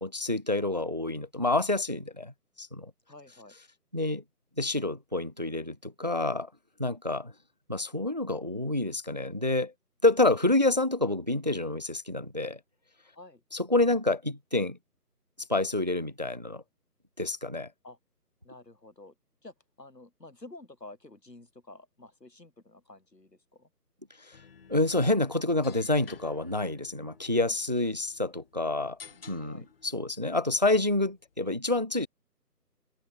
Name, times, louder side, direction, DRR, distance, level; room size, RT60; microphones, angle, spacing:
voice 1, 0.0-2.3 2.6-2.9 3.9-4.2 4.6-6.5 6.8-7.3 7.7-9.7 10.0-12.6 13.5-14.8 15.5-16.6 17.2-17.7 24.3-24.4 24.7-29.0 29.3-32.1, left 2 dB, 25° right, 0.6 m, -28 dB
voice 2, 3.1-3.6 13.1-13.4 17.8-18.0 18.4-19.1 19.4-23.7 29.4-29.7, left 2 dB, 80° left, 7.2 m, -50 dB
sound 1, 24.3-31.5, left 6 dB, 35° left, 7.9 m, -54 dB
open air
figure-of-eight pair, 155°, 48 cm